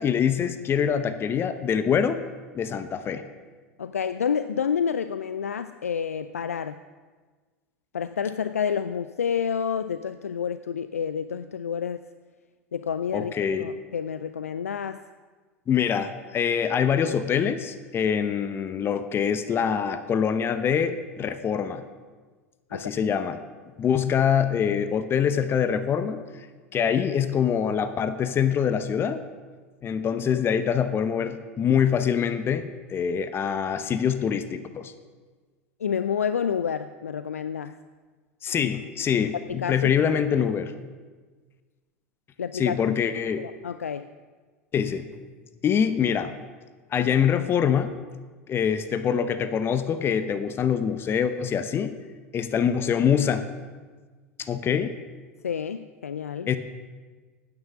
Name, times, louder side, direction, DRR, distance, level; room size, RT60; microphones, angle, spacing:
voice 1, 0.0-2.2 2.5-3.2 13.1-13.7 15.7-21.8 22.7-23.4 23.8-26.5 26.7-29.2 29.8-34.9 38.4-40.7 42.5-43.4 44.7-45.0 45.6-46.3 46.9-48.0 48.5-51.9 52.3-53.5 54.4-54.9 56.5-56.6, left 7 dB, 30° left, 11 dB, 0.8 m, -24 dB
voice 2, 3.8-6.8 7.9-12.1 12.7-15.0 22.7-22.9 35.8-37.8 39.5-39.9 40.3-40.5 42.4-44.1 55.4-56.5, left 7 dB, 85° left, 12 dB, 0.3 m, -29 dB
9.8 x 8.9 x 7.2 m, 1.4 s
figure-of-eight pair, 80°, 8 cm